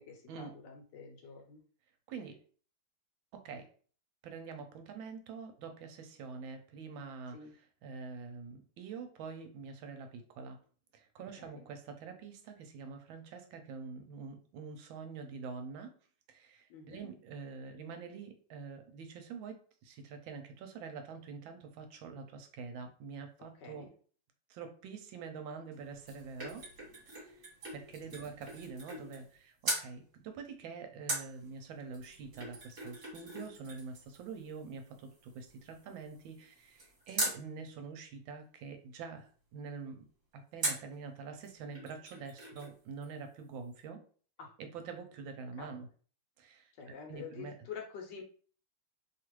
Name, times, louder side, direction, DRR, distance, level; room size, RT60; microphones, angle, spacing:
voice 1, 0.0-1.6 7.3-7.5 11.4-11.6 16.7-17.1 23.4-23.9 28.2-28.4 44.4-44.5 45.6-45.7 46.8-48.2, left 6 dB, 70° left, 2 dB, 1.2 m, -48 dB
voice 2, 3.3-3.7 4.2-10.6 10.9-15.9 16.3-23.9 24.5-26.6 27.1-27.4 27.7-40.1 40.3-44.0 44.6-45.9 46.4-47.6, right 5 dB, 80° right, 6 dB, 1.3 m, -46 dB
sound 1, 25.7-29.3 29.6-29.9 31.1-37.4 40.6-41.0 41.4-41.5 41.7-42.7 43.0-43.1, right 2 dB, 45° right, 1.3 m, -41 dB
3.2 x 2.4 x 3.0 m, 0.43 s
omnidirectional pair, 2.2 m